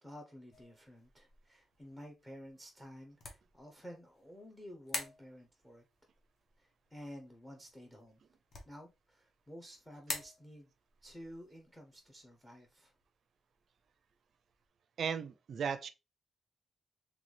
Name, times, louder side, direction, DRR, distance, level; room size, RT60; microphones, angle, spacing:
voice 1, 0.0-5.8 6.6-8.2 8.7-10.7 11.0-12.9, equal, 10° left, 0.7 m, -52 dB
sound 1, 0.5-14.7, left 3 dB, 55° left, 1.3 m, -50 dB
voice 2, 15.0-15.9, right 7 dB, 55° right, 0.4 m, -36 dB
3.9 x 3.5 x 3.2 m
cardioid pair, 125°, 0 cm